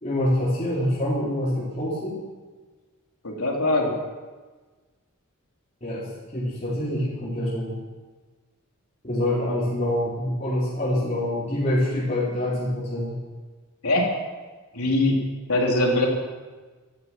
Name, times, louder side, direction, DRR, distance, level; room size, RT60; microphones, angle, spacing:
voice 1, 0.0-2.2 5.8-7.7 9.0-13.1, left 1 dB, 30° left, -8 dB, 4.2 m, -26 dB
voice 2, 3.2-3.9 13.8-14.1 14.7-15.2 15.5-16.1, left 2 dB, 85° left, 0 dB, 3.5 m, -21 dB
16.5 x 14.0 x 6.0 m, 1.3 s
head